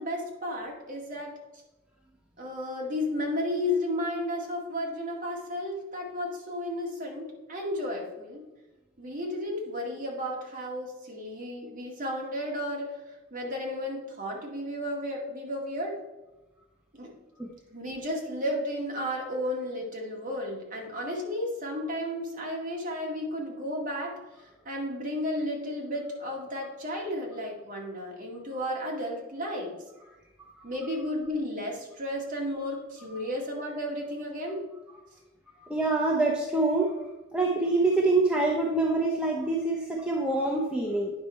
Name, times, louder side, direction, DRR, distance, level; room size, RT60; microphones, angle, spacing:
voice 1, 0.0-1.4 2.4-8.4 9.0-12.9 13.3-16.0 16.9-17.1 17.7-24.2 24.7-29.8 30.6-34.7, left 1 dB, 40° right, -1 dB, 1.9 m, -33 dB
voice 2, 35.6-37.0 37.3-41.1, right 2 dB, 5° right, -2 dB, 0.8 m, -25 dB
9.4 x 5.9 x 4.3 m, 1.1 s
head